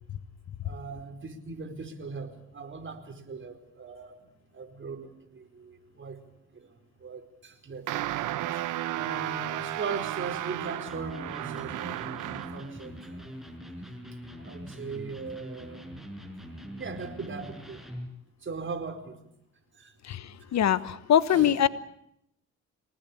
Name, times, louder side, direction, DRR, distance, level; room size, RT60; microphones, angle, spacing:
voice 1, 0.6-6.2 6.5-6.7 7.0-8.0 8.9-13.4 14.4-16.0 16.8-17.8 18.4-19.2 19.7-19.9 21.3-21.6, right 4 dB, 40° right, 5 dB, 4.7 m, -39 dB
sound 1, 7.9-12.7, right 14 dB, 85° right, 1.1 m, -33 dB
Electric guitar, 10.9-18.2, equal, ahead, 6.2 m, -43 dB
voice 2, 20.0-21.7, left 10 dB, 60° left, 15 dB, 1.2 m, -23 dB
25.5 x 19.0 x 8.7 m, 0.78 s
cardioid pair, 90°, 30 cm